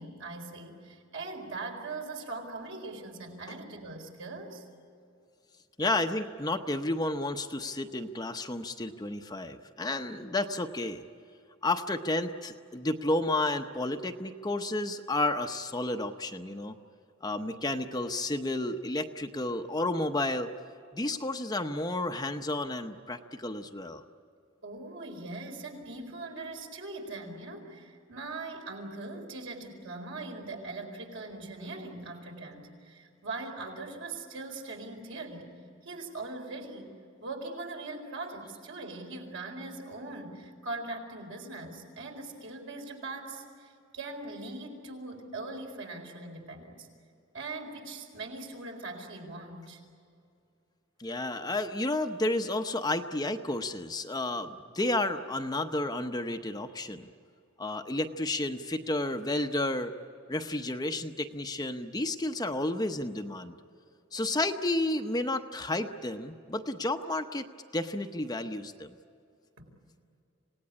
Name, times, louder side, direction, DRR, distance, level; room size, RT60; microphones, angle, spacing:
voice 1, 0.0-4.6 24.6-36.9 37.2-46.9 47.3-49.8 69.6-69.7, right 2 dB, 65° right, 2 dB, 4.4 m, -41 dB
voice 2, 5.8-11.0 11.6-16.8 17.2-20.5 20.9-24.0 51.0-57.1 57.6-59.9 60.3-63.6 64.1-67.5 67.7-68.9, left 2 dB, 20° left, 6 dB, 0.8 m, -31 dB
27.0 x 18.0 x 9.8 m, 2.5 s
head